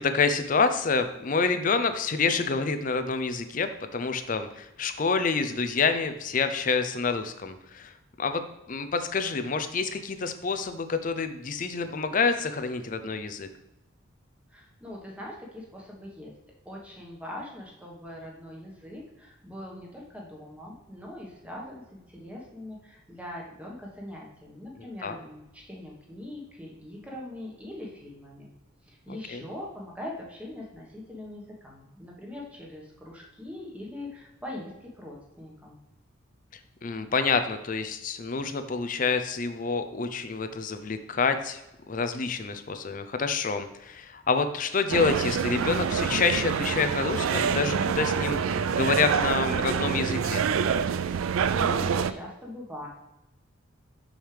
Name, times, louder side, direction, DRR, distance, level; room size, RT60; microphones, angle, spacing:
voice 1, 0.0-7.9 8.2-8.4 8.7-13.5 24.8-25.2 29.1-29.5 36.8-41.6 41.9-50.4, left 4 dB, 40° left, 9 dB, 0.5 m, -27 dB
voice 2, 14.5-16.3 16.6-28.5 28.8-35.8 51.3-52.9, left 1 dB, 5° right, -2 dB, 1.3 m, -42 dB
sound 1, 44.9-52.1, right 6 dB, 80° right, 0.4 m, -26 dB
6.4 x 6.3 x 3.3 m, 0.93 s
head